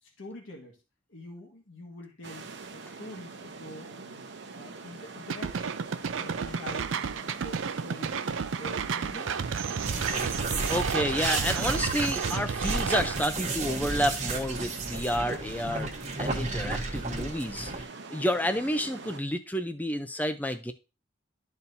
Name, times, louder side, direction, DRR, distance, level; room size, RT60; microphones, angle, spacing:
voice 1, 0.0-0.8 1.1-4.3 4.5-5.8 6.1-8.2 8.5-9.3, left 1 dB, 85° left, 0 dB, 1.7 m, -46 dB
sound 1, 2.2-19.2, right 4 dB, 65° right, 0.9 m, -43 dB
sound 2, 5.3-13.2, right 6 dB, 90° right, 0.5 m, -32 dB
sound 3, 9.8-17.9, right 3 dB, 35° right, 1.1 m, -33 dB
voice 2, 10.7-15.9 16.2-17.7 18.1-20.7, equal, 10° left, 8 dB, 0.6 m, -30 dB
12.0 x 4.3 x 2.7 m, 0.29 s
head